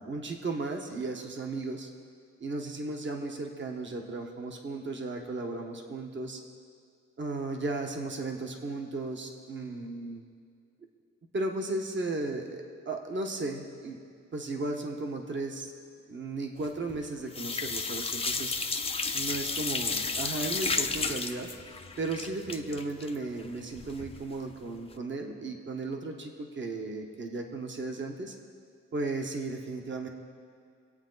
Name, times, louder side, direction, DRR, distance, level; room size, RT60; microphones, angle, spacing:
voice 1, 0.0-1.9 2.4-6.4 7.2-10.2 11.3-14.0 14.3-15.7 16.1-18.5 19.1-21.5 22.0-28.3 28.9-30.1, right 2 dB, 40° right, 3 dB, 1.4 m, -35 dB
sound 1, 16.6-17.0 17.3-24.2 24.5-24.6 24.9-25.0, left 4 dB, 20° left, 0.6 m, -32 dB
26.0 x 8.8 x 4.1 m, 2.2 s
wide cardioid pair, 130°, 30 cm